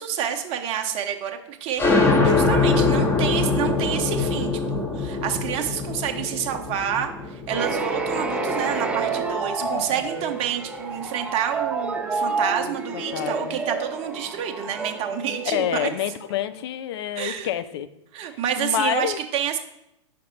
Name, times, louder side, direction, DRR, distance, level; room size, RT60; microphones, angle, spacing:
voice 1, 0.0-15.9 17.2-17.5 18.1-19.6, right 9 dB, 40° right, 4 dB, 0.8 m, -28 dB
sound 1, 1.8-9.1, left 3 dB, 15° left, 1.0 m, -23 dB
sound 2, 7.5-16.3, right 4 dB, 5° right, 0.6 m, -29 dB
voice 2, 12.6-13.6 15.5-17.9 18.2-19.2, left 11 dB, 55° left, 13 dB, 0.5 m, -28 dB
5.2 x 5.1 x 4.4 m, 0.85 s
figure-of-eight pair, 100°, 16 cm